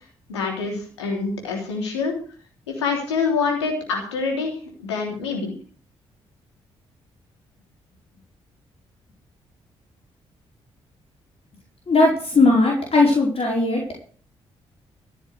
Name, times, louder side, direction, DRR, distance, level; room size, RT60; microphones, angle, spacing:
voice 1, 0.3-2.1 2.7-5.5, left 4 dB, 90° left, 1 dB, 3.3 m, -26 dB
voice 2, 11.9-13.8, left 2 dB, 45° left, -1 dB, 4.9 m, -18 dB
14.5 x 6.7 x 8.0 m, 0.42 s
hypercardioid pair, 40°, 14 cm